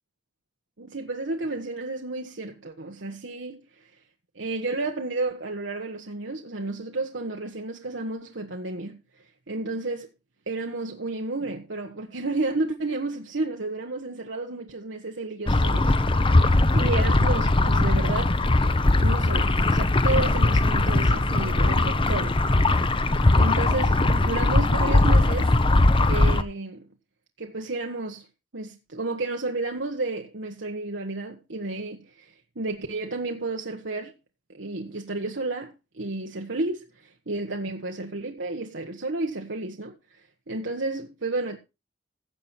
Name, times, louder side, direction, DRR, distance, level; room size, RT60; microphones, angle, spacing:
voice 1, 0.8-3.9 4.3-9.0 9.5-10.1 10.5-16.5 16.7-18.4 19.0-22.7 23.3-25.5 26.1-26.9 27.4-28.2 28.5-34.1 34.5-40.2 40.5-41.6, right 2 dB, 85° right, 1.4 m, -32 dB
sound 1, 15.5-26.4, left 2 dB, 30° left, 0.8 m, -20 dB
16.0 x 7.0 x 4.4 m
head